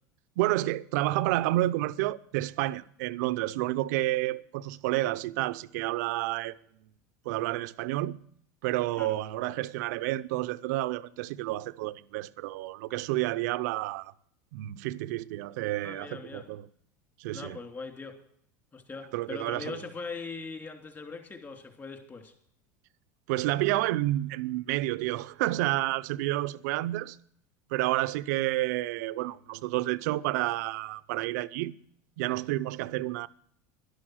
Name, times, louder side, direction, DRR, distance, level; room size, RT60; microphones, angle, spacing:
voice 1, 0.4-6.5 7.2-8.2 8.6-14.1 14.5-16.7 17.2-17.6 19.1-19.8 23.3-27.2 27.7-31.8 32.2-33.3, right 17 dB, 75° right, 0.6 m, -30 dB
voice 2, 15.8-16.4 17.3-18.2 18.7-22.3, left 4 dB, 25° left, 3.0 m, -41 dB
12.0 x 11.5 x 6.3 m
supercardioid pair, 105°, 9 cm